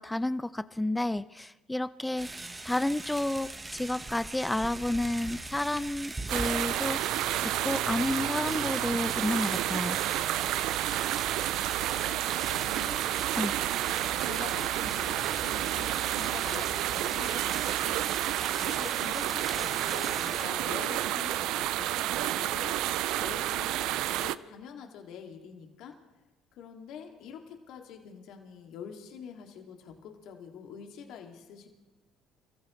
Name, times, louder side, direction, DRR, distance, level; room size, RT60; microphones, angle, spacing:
voice 1, 0.0-10.0 13.4-13.5, left 1 dB, 10° left, 16 dB, 0.6 m, -31 dB
sound 1, 2.2-20.5, right 2 dB, 20° right, 1.3 m, -41 dB
sound 2, 6.3-24.4, right 14 dB, 70° right, 0.4 m, -30 dB
voice 2, 12.5-13.0 13.7-22.8 23.1-26.0 26.5-31.7, left 7 dB, 65° left, 3 dB, 2.4 m, -45 dB
29.5 x 14.5 x 3.2 m, 1.1 s
hypercardioid pair, 70°, 0 cm